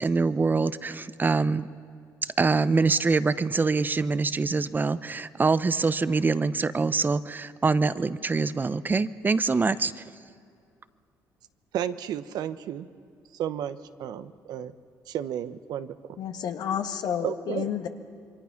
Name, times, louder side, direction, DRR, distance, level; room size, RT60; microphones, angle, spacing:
voice 1, 0.0-1.7 2.2-10.0, right 4 dB, 25° right, 15 dB, 0.8 m, -24 dB
voice 2, 11.7-12.9 13.3-14.7 15.1-16.2 17.2-17.7, right 10 dB, 75° right, 12 dB, 0.9 m, -33 dB
voice 3, 16.2-17.9, left 9 dB, 70° left, 7 dB, 1.6 m, -30 dB
27.0 x 23.0 x 5.9 m, 2.3 s
supercardioid pair, 75°, 7 cm